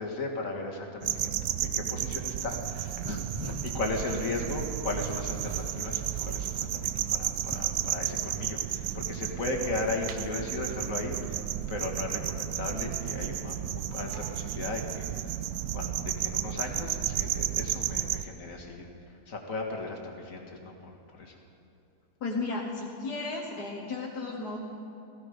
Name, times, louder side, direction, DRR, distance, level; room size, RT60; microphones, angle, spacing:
voice 1, 0.0-1.3 1.6-11.4 11.7-15.4 15.7-21.4, left 3 dB, 60° left, 1 dB, 2.2 m, -36 dB
sound 1, 1.0-18.2, right 11 dB, 75° right, 1.1 m, -33 dB
sound 2, 2.5-8.4, right 2 dB, 25° right, 0.7 m, -45 dB
voice 2, 22.2-24.6, left 3 dB, 85° left, -3 dB, 1.9 m, -34 dB
17.0 x 16.0 x 5.2 m, 2.8 s
omnidirectional pair, 1.6 m